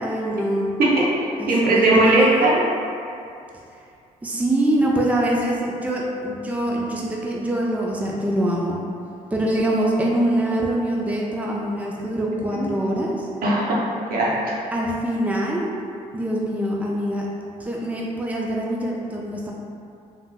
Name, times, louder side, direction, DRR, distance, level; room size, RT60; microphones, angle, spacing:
voice 1, 0.0-0.7 1.4-2.5 4.2-8.8 9.3-13.3 14.7-15.7 16.1-17.3 17.6-19.5, right 1 dB, 10° right, -3 dB, 0.5 m, -24 dB
voice 2, 0.8-2.6 12.5-12.7 13.4-13.8 14.1-14.6, right 2 dB, 65° right, -5 dB, 0.8 m, -19 dB
3.5 x 2.8 x 2.3 m, 2.5 s
supercardioid pair, 55°, 16 cm